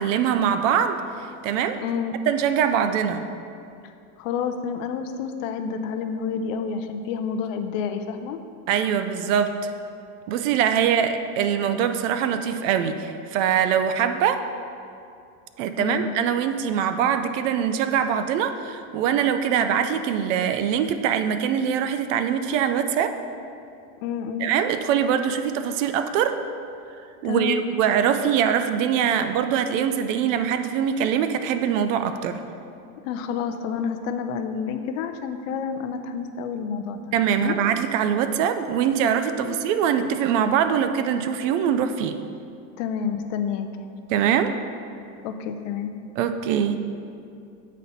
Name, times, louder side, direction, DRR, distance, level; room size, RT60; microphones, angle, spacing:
voice 1, 0.0-1.8 2.3-3.3 8.7-9.7 10.3-14.5 15.6-23.1 24.4-26.4 27.2-32.4 37.1-42.2 44.1-44.5 46.2-46.8, right 8 dB, 55° right, 9 dB, 0.5 m, -23 dB
voice 2, 1.8-2.1 4.2-8.4 15.8-16.1 24.0-24.5 27.2-27.7 33.0-37.6 39.4-39.6 40.0-40.1 42.8-43.7 45.2-45.9, left 6 dB, 55° left, 7 dB, 0.6 m, -29 dB
8.1 x 4.2 x 4.1 m, 2.5 s
supercardioid pair, 130°, 47 cm